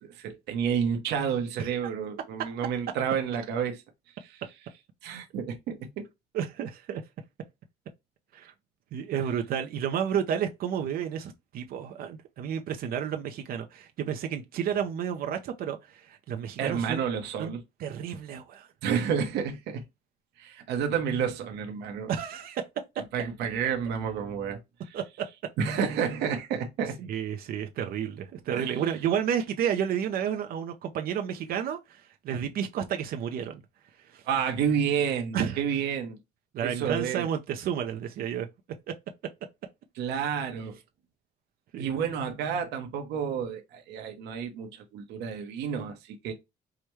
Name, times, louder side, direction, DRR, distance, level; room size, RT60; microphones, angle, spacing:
voice 1, 0.0-3.8 4.2-4.4 5.0-6.1 9.1-9.2 16.6-17.6 18.8-19.8 20.4-22.1 23.1-24.6 24.8-25.0 25.6-27.0 28.5-28.8 34.3-36.2 36.6-37.3 40.0-40.8 41.8-46.3, right 7 dB, 80° right, 0.9 m, -30 dB
voice 2, 1.6-1.9 6.3-7.0 8.3-8.5 8.9-17.0 17.4-17.5 17.8-18.7 22.1-22.7 24.9-25.3 27.0-33.6 34.1-34.2 35.3-35.6 36.5-38.5 38.9-39.0 41.7-41.9, right 8 dB, 60° right, 0.5 m, -31 dB
4.7 x 2.2 x 3.0 m
cardioid pair, 110°, 17 cm